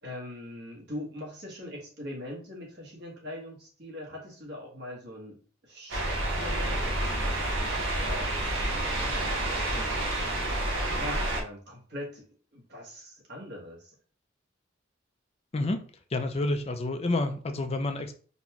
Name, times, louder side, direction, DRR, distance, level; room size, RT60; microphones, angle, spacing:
voice 1, 0.0-10.0 10.9-12.3 12.5-14.0, left 1 dB, 60° right, -2 dB, 1.3 m, -42 dB
sound 1, 5.9-11.4, right 1 dB, 80° right, 1.0 m, -29 dB
voice 2, 16.1-18.1, left 2 dB, 30° left, 6 dB, 0.5 m, -29 dB
4.0 x 2.3 x 2.9 m, 0.41 s
head